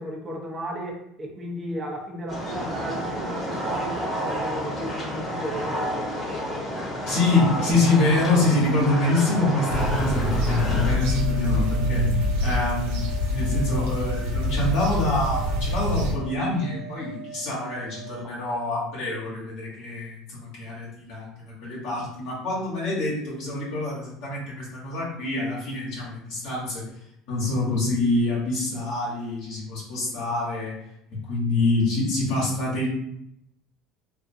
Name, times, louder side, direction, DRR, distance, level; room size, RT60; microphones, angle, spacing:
voice 1, 0.0-6.1, equal, 25° right, 0 dB, 0.7 m, -34 dB
sound 1, 2.3-10.9, equal, 25° left, 1.0 m, -30 dB
voice 2, 7.1-12.1 12.4-13.0 13.3-26.8 27.3-30.7 31.1-32.9, left 2 dB, 75° left, -7 dB, 1.1 m, -26 dB
sound 2, 9.7-16.1, left 1 dB, 90° right, 0.8 m, -25 dB
sound 3, 10.6-18.2, right 6 dB, 60° right, 0.4 m, -41 dB
2.5 x 2.4 x 2.6 m, 0.75 s
supercardioid pair, 90°, 0 cm